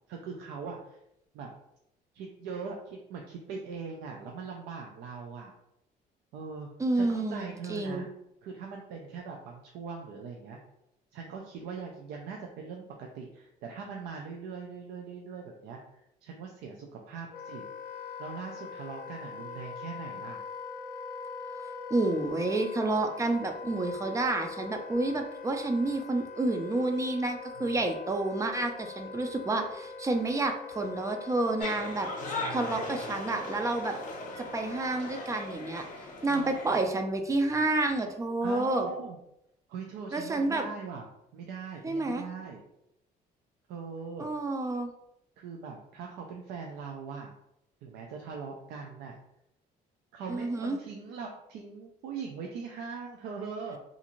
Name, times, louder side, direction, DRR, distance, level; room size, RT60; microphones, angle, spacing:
voice 1, 0.1-1.0 1.3-1.5 2.1-5.5 6.3-8.1 8.4-10.6 11.1-17.6 18.2-20.4 27.6-27.7 32.3-33.0 36.3-36.6 38.4-39.2 39.7-41.1 41.3-42.6 43.7-44.3 45.4-47.3 47.8-49.2 50.1-53.8, right 5 dB, 80° right, 1 dB, 0.4 m, -41 dB
voice 2, 6.8-8.1 21.9-32.1 32.5-33.9 34.4-35.9 36.2-38.9 40.1-40.6 41.8-42.2 44.2-44.9 50.3-50.8, right 2 dB, 20° right, 5 dB, 0.4 m, -29 dB
Wind instrument woodwind instrument, 17.3-35.5, left 4 dB, 65° left, 0.4 m, -43 dB
sound 1, 31.6-36.8, left 2 dB, 50° left, 0.8 m, -39 dB
2.5 x 2.5 x 2.9 m, 0.81 s
cardioid pair, 110°, 17 cm